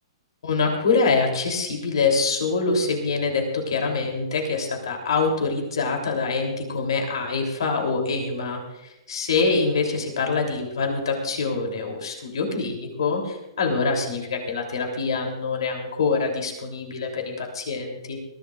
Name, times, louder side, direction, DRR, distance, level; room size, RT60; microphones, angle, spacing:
voice 1, 0.4-18.2, left 4 dB, 75° left, 2 dB, 3.5 m, -25 dB
22.0 x 15.5 x 2.6 m, 0.94 s
hypercardioid pair, 130°, 3 cm